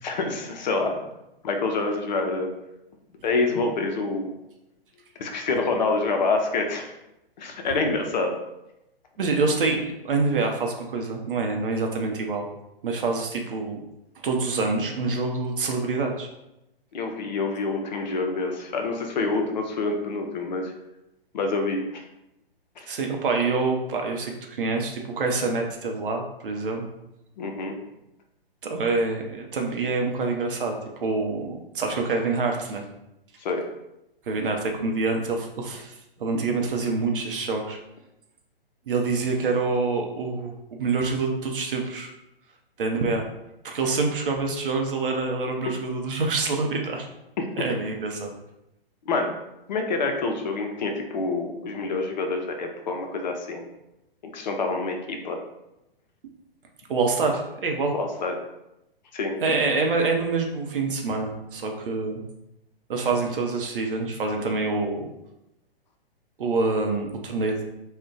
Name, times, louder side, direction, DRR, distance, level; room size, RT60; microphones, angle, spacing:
voice 1, 0.0-1.0 1.4-2.5 3.2-4.4 5.2-6.9 7.4-8.3 16.9-20.7 21.3-22.0 22.8-22.9 27.4-27.7 33.4-33.6 47.4-47.5 49.1-49.4 49.7-53.6 54.2-55.4 57.9-58.4 59.1-59.4, left 3 dB, 50° left, 3 dB, 0.5 m, -27 dB
voice 2, 9.2-12.5 12.8-13.8 14.2-16.3 22.9-26.9 28.6-32.8 34.3-37.8 38.9-42.1 42.8-43.3 43.6-47.1 47.6-48.3 56.9-57.9 59.4-62.2 62.9-65.1 66.4-67.6, right 3 dB, 60° right, 2 dB, 0.6 m, -26 dB
2.4 x 2.1 x 3.8 m, 0.88 s
figure-of-eight pair, 125°, 30 cm